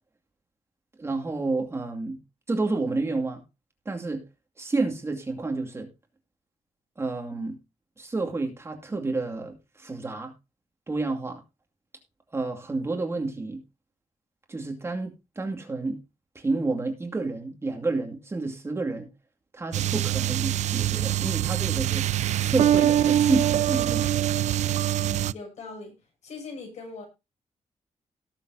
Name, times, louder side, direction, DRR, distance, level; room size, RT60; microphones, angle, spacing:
voice 1, 1.0-2.2 2.5-3.4 3.9-4.2 4.6-5.9 7.0-7.6 8.0-10.3 10.9-11.4 12.3-13.6 14.5-16.0 16.3-19.1 19.5-22.1 22.4-24.2, right 3 dB, 20° right, 2.4 m, -30 dB
sound 1, 19.7-25.3, right 12 dB, 80° right, 0.4 m, -24 dB
voice 2, 25.0-25.9 26.2-27.1, left 3 dB, 75° left, 6.8 m, -40 dB
18.0 x 7.2 x 2.8 m
wide cardioid pair, 155°, 12 cm